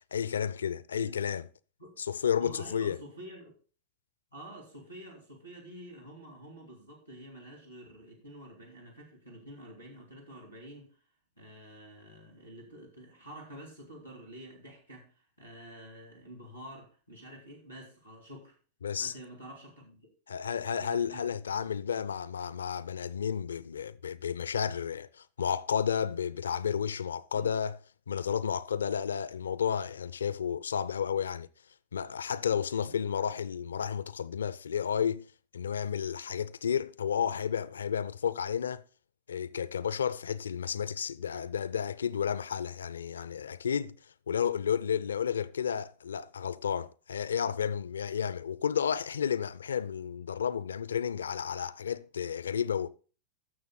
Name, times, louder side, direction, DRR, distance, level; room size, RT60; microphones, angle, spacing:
voice 1, 0.1-1.4 2.0-3.0 18.8-19.1 20.3-27.8 28.1-31.5 31.9-35.3 35.5-38.8 39.3-44.0 44.3-52.9, left 7 dB, 70° left, 0.4 m, -32 dB
voice 2, 2.4-3.5 4.3-10.9 11.4-18.6 19.0-20.1 20.8-21.6 27.3-27.5 32.8-33.0, right 1 dB, 90° right, 3.7 m, -48 dB
13.0 x 6.8 x 4.0 m
figure-of-eight pair, 90°, 0 cm